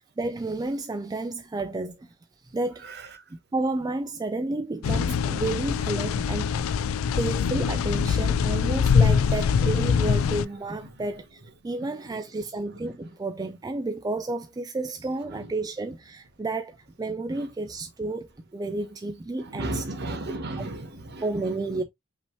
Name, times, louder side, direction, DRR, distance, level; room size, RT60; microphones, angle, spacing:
voice 1, 0.0-2.1 2.5-2.8 3.5-6.5 7.2-19.8 21.2-21.8, right 2 dB, 20° right, 0.3 m, -31 dB
sound 1, 4.8-10.5, left 6 dB, 70° left, 0.3 m, -23 dB
voice 2, 10.7-11.1 11.8-12.2 12.9-13.0 15.3-15.5 17.3-17.5 19.4-21.8, right 1 dB, 50° right, 1.2 m, -36 dB
5.4 x 2.9 x 3.1 m
head